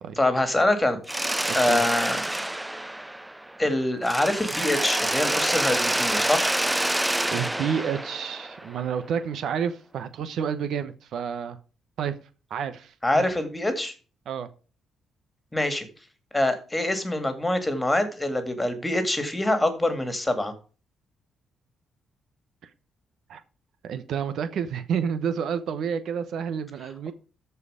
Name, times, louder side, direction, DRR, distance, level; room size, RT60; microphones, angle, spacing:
voice 1, 0.1-1.0 1.5-2.2 3.6-6.6 13.0-13.9 15.5-15.9 16.3-20.5, left 1 dB, 10° left, 9 dB, 2.2 m, -25 dB
Mechanisms, 1.1-3.7 4.0-8.9, right 1 dB, 10° right, 0.5 m, -27 dB
voice 2, 1.5-1.8 7.3-11.6 12.0-12.1 12.5-13.3 14.3-14.5 23.3-23.4 23.8-27.1, right 7 dB, 70° right, 11 dB, 1.0 m, -29 dB
13.5 x 4.6 x 4.9 m, 0.36 s
cardioid pair, 90°, 0 cm